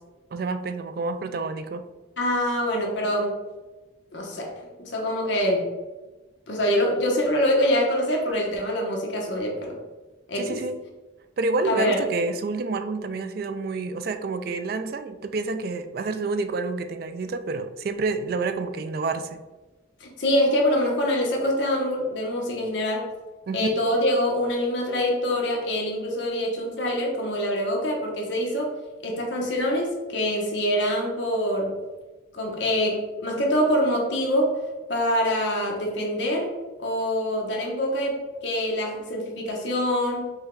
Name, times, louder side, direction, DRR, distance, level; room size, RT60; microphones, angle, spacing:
voice 1, 0.3-1.8 10.3-10.8 11.4-19.4 23.5-23.7, right 3 dB, 50° right, 9 dB, 0.3 m, -28 dB
voice 2, 2.2-3.4 4.1-5.6 6.5-9.8 10.3-10.6 11.6-12.0 20.0-23.1 23.5-28.7 29.0-31.7 32.3-34.5 34.9-36.5 36.8-40.3, equal, 70° left, -1 dB, 1.0 m, -25 dB
5.2 x 2.2 x 3.8 m, 1.2 s
head